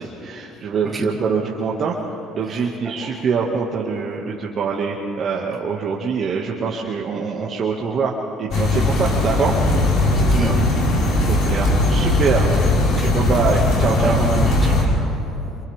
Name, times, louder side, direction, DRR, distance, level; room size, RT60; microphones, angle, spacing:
voice 1, 0.0-2.0 2.3-9.8 11.3-12.5 13.1-14.2, right 5 dB, 50° right, -2 dB, 2.1 m, -24 dB
voice 2, 2.5-3.2 10.1-10.8 12.9-13.2 14.0-14.9, right 3 dB, 30° right, -1 dB, 3.5 m, -28 dB
sound 1, 8.5-14.8, left 2 dB, 60° left, 5.6 m, -18 dB
29.0 x 27.5 x 3.7 m, 2.8 s
hypercardioid pair, 70°, 0 cm